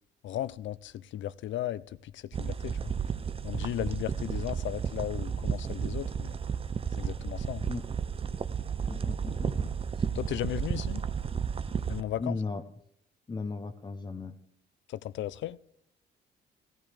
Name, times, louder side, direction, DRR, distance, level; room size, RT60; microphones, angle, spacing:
voice 1, 0.2-1.8 2.1-2.9 3.4-6.4 7.0-7.7 10.1-11.0 11.9-12.4 14.9-15.6, left 13 dB, 70° left, 0.5 m, -35 dB
sound 1, 2.3-12.0, right 6 dB, 30° right, 0.5 m, -33 dB
voice 2, 8.9-9.7 10.0-10.1 12.2-12.6 13.3-14.3, left 3 dB, 20° left, 0.7 m, -36 dB
15.5 x 14.5 x 3.3 m
cardioid pair, 90°, 20 cm